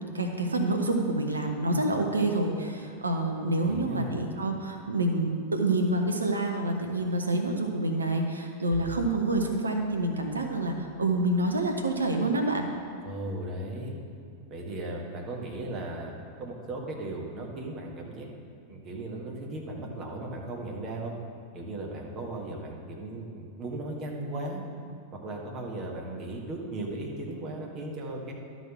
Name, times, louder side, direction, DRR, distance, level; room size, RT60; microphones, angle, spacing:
voice 1, 0.0-12.7, right 2 dB, 75° right, 3 dB, 0.8 m, -27 dB
voice 2, 3.6-4.1 13.0-14.0 14.5-16.1 16.4-18.3 18.7-21.1 21.5-24.6 25.2-28.3, right 2 dB, 30° right, -1 dB, 1.5 m, -36 dB
Bowed string instrument, 8.7-15.1, right 2 dB, 5° right, 1.2 m, -51 dB
12.0 x 4.0 x 6.0 m, 2.5 s
figure-of-eight pair, 90°, 0 cm